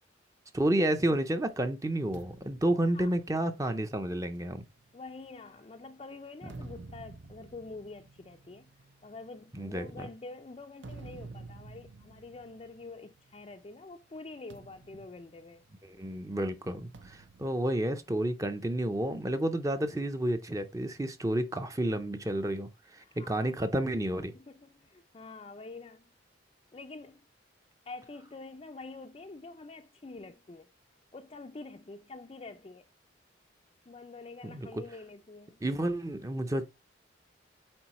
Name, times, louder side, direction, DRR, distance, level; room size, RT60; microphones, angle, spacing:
voice 1, 0.5-4.6 6.6-6.7 9.6-10.1 15.9-24.3 34.4-34.7 35.6-36.6, right 1 dB, 15° right, 0.5 m, -30 dB
sound 1, 2.1-5.7 6.2-13.7 13.9-14.2 14.5-16.1 16.9-18.7, right 3 dB, 70° right, 0.7 m, -51 dB
voice 2, 4.9-15.6 23.0-23.5 24.3-26.1 26.7-27.2 27.9-30.7 31.1-32.8 33.9-35.6, left 3 dB, 30° left, 0.4 m, -46 dB
8.8 x 3.9 x 3.0 m
head